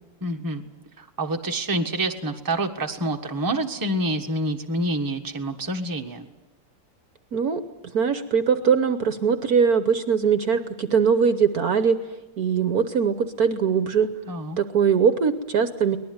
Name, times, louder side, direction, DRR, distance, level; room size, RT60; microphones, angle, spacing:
voice 1, 0.2-0.6 1.0-6.3 14.3-14.6, right 1 dB, 10° right, 3 dB, 1.4 m, -27 dB
voice 2, 7.9-12.0 12.4-14.1 14.6-16.0, right 6 dB, 55° right, 10 dB, 1.3 m, -21 dB
23.0 x 19.5 x 9.6 m, 1.1 s
omnidirectional pair, 2.0 m